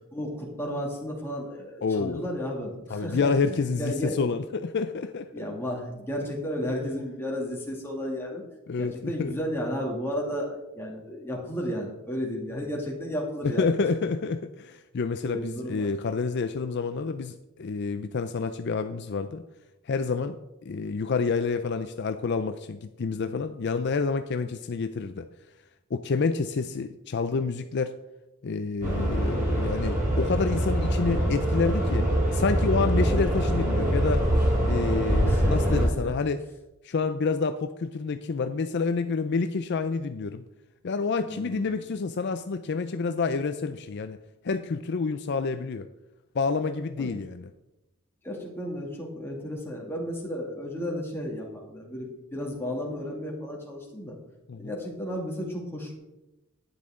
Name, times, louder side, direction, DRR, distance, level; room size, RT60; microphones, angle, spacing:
voice 1, 0.1-4.1 5.3-8.4 8.8-13.7 15.2-15.9 35.3-36.1 41.3-41.7 47.0-47.1 48.2-54.1 54.6-56.0, equal, 10° left, -2 dB, 2.4 m, -33 dB
voice 2, 1.8-2.3 2.9-5.4 8.7-9.4 13.4-19.4 19.9-20.4 20.6-25.3 25.9-27.9 28.4-34.2 34.6-36.4 36.8-40.4 40.8-44.2 44.4-45.9 46.3-47.5 54.5-54.7, left 4 dB, 50° left, 9 dB, 0.4 m, -28 dB
sound 1, 28.8-35.9, equal, 40° right, 3.3 m, -24 dB
11.5 x 9.7 x 3.7 m, 0.96 s
head